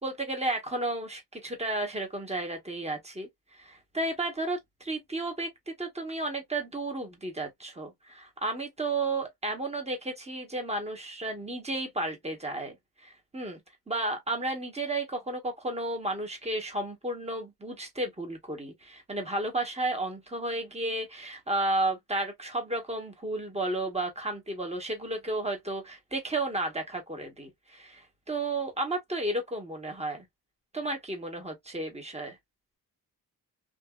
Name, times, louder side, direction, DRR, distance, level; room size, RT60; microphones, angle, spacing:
voice 1, 0.0-12.8 13.0-13.6 13.9-30.2 30.7-32.4, right 2 dB, 15° right, 1.1 m, -33 dB
2.7 x 2.6 x 2.3 m
wide cardioid pair, 115°, 37 cm